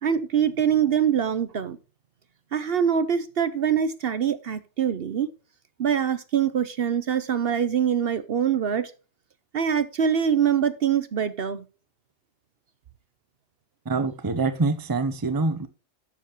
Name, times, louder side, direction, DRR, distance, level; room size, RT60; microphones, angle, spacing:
voice 1, 0.0-1.8 2.5-5.3 5.8-8.9 9.5-11.6, right 8 dB, 55° right, 0.9 m, -24 dB
voice 2, 13.8-15.7, right 3 dB, 20° right, 0.7 m, -25 dB
12.0 x 7.1 x 3.1 m
omnidirectional pair, 1.2 m